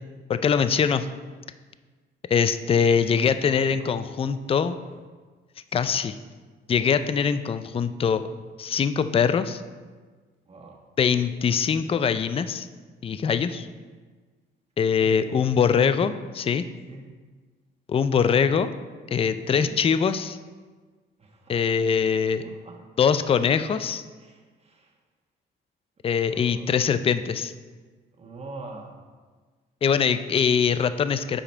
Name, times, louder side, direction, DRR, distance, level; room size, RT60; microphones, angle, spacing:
voice 1, 0.3-1.1 2.3-4.8 5.7-6.1 6.7-8.2 8.6-9.6 11.0-12.7 13.0-13.7 14.8-16.6 17.9-18.7 19.1-20.4 21.5-22.4 23.0-24.0 26.0-27.5 29.8-31.4, left 6 dB, 30° left, 12 dB, 0.4 m, -23 dB
voice 2, 3.1-4.0 4.8-5.0 5.7-5.9 10.5-10.9 13.1-13.3 15.0-15.6 16.9-17.3 19.2-19.9 21.2-21.9 22.4-22.9 24.2-25.0 26.2-26.9 28.1-29.0, right 3 dB, 30° right, 0 dB, 1.4 m, -45 dB
8.7 x 4.9 x 4.4 m, 1.4 s
cardioid pair, 90°, 20 cm